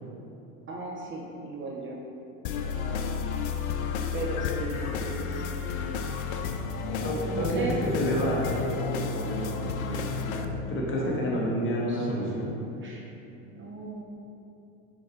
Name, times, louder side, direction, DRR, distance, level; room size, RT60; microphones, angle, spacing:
voice 1, 0.7-2.0 2.5-2.9 4.1-7.8 10.8-12.5 12.8-13.0 13.5-14.0, right 3 dB, 30° right, -2 dB, 0.9 m, -38 dB
sound 1, 2.4-10.4, left 5 dB, 80° left, 0.6 m, -32 dB
voice 2, 7.0-12.5, equal, 30° left, -4 dB, 1.5 m, -30 dB
6.4 x 4.2 x 4.4 m, 2.8 s
supercardioid pair, 115°, 41 cm